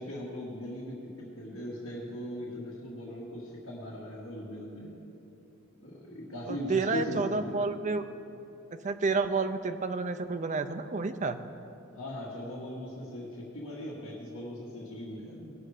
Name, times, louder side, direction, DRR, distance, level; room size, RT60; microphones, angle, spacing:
voice 1, 0.0-4.9 5.8-7.6 12.0-15.5, equal, 65° left, -8 dB, 1.9 m, -39 dB
voice 2, 6.5-8.0 8.8-11.4, right 4 dB, 35° right, 9 dB, 0.5 m, -30 dB
19.0 x 6.6 x 4.9 m, 3.0 s
head